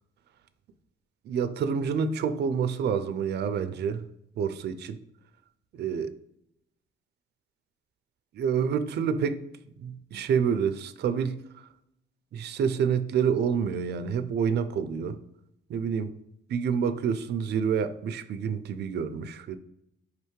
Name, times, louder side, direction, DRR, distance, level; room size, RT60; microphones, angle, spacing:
voice 1, 1.3-4.0 4.4-5.0 5.8-6.1 8.3-9.4 9.8-11.4 12.3-15.2 15.7-16.1 16.5-19.6, right 7 dB, 55° right, 10 dB, 0.4 m, -28 dB
4.9 x 3.3 x 3.1 m, 0.82 s
cardioid pair, 90°, 20 cm